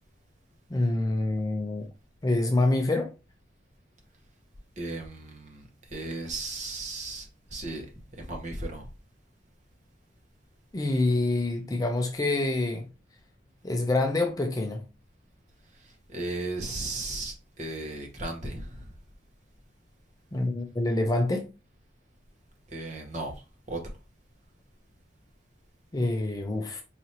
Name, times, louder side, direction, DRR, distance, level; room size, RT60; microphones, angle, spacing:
voice 1, 0.7-1.9 2.2-3.1 10.7-12.9 13.6-14.9 20.3-21.5 25.9-26.8, left 2 dB, 20° left, 0.4 m, -26 dB
voice 2, 4.8-7.9 8.1-8.9 15.7-18.9 22.7-23.8, right 2 dB, 40° right, 1.1 m, -36 dB
4.8 x 2.7 x 2.9 m
head